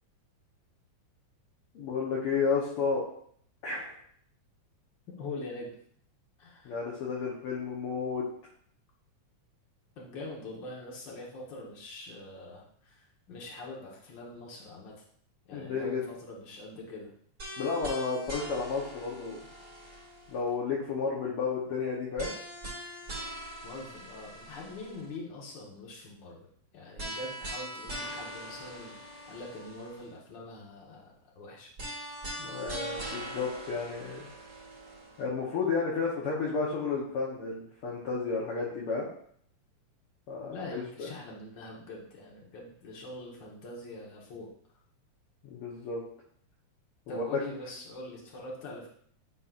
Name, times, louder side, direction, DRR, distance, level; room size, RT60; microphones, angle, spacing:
voice 1, 1.7-3.0 3.6-3.9 6.6-8.2 15.5-16.0 17.6-19.4 20.3-22.3 32.4-34.3 35.2-39.1 40.3-41.1 45.4-46.0 47.1-47.2, left 4 dB, 65° left, -4 dB, 1.5 m, -32 dB
voice 2, 5.2-5.7 6.4-6.8 9.9-15.0 15.5-17.1 23.6-31.7 40.5-44.5 47.1-48.9, left 2 dB, 45° left, -3 dB, 1.5 m, -43 dB
sound 1, 17.4-20.5 22.2-25.2 27.0-30.1 31.8-35.2, right 1 dB, 25° right, 2.3 m, -42 dB
10.0 x 4.2 x 2.5 m, 0.62 s
omnidirectional pair, 3.8 m